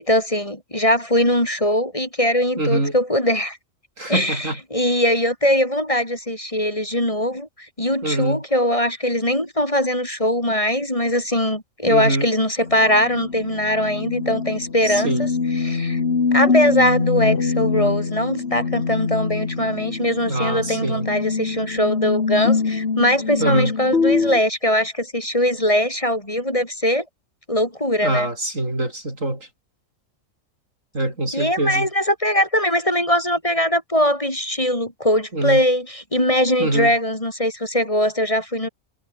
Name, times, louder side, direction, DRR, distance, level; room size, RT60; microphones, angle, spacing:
voice 1, 0.0-3.6 4.1-7.5 7.8-15.3 15.6-16.0 16.3-27.0 27.5-28.3 31.3-38.7, equal, 25° left, 4.9 m, -21 dB
voice 2, 2.6-3.0 4.0-4.6 8.0-8.4 11.9-12.3 14.8-15.3 20.3-21.1 23.4-23.7 28.0-29.5 30.9-31.9 35.3-35.6 36.6-37.0, right 1 dB, 75° right, 7.9 m, -24 dB
sound 1, 12.6-24.4, left 4 dB, 50° left, 2.0 m, -24 dB
omnidirectional pair, 1.4 m